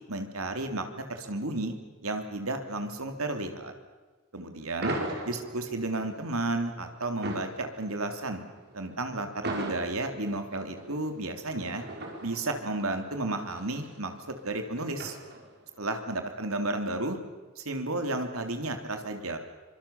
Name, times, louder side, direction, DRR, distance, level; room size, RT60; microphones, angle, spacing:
voice 1, 0.1-1.7 2.0-3.7 4.3-4.9 5.3-8.4 8.7-11.8 12.2-15.2 15.8-17.2 17.6-19.4, right 2 dB, 90° right, 6 dB, 3.2 m, -32 dB
sound 1, 4.8-15.7, right 1 dB, 50° right, 5.1 m, -40 dB
25.0 x 24.5 x 7.1 m, 1.3 s
head